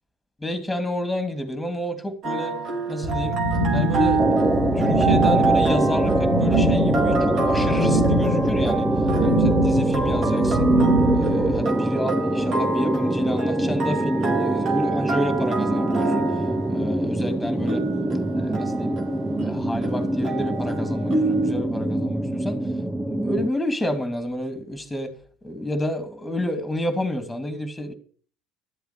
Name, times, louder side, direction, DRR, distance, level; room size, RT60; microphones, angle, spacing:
voice 1, 0.4-2.6 2.9-3.4 3.7-8.9 9.2-10.7 11.1-16.2 16.7-17.9 18.4-19.0 19.4-22.7 23.0-25.1 25.4-27.9, left 1 dB, 10° left, 2.9 m, -30 dB
sound 1, 2.2-21.5, right 4 dB, 55° right, 4.4 m, -28 dB
sound 2, 3.0-11.6, right 1 dB, 75° right, 3.5 m, -24 dB
sound 3, 4.2-23.5, right 1 dB, 10° right, 0.9 m, -24 dB
13.0 x 8.0 x 6.9 m
hypercardioid pair, 75°, 0 cm